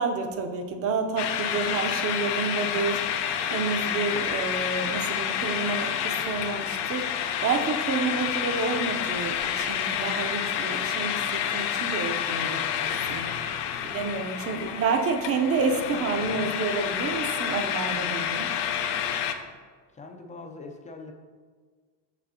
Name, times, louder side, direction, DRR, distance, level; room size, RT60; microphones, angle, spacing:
voice 1, 0.0-13.4 13.8-18.5, right 4 dB, 35° right, 6 dB, 0.6 m, -29 dB
sound 1, 1.2-19.4, left 9 dB, 75° left, 0.7 m, -29 dB
voice 2, 13.7-14.0 14.5-14.8 19.9-21.1, left 3 dB, 20° left, 4 dB, 0.4 m, -43 dB
6.4 x 6.1 x 2.8 m, 1.5 s
cardioid pair, 125°, 42 cm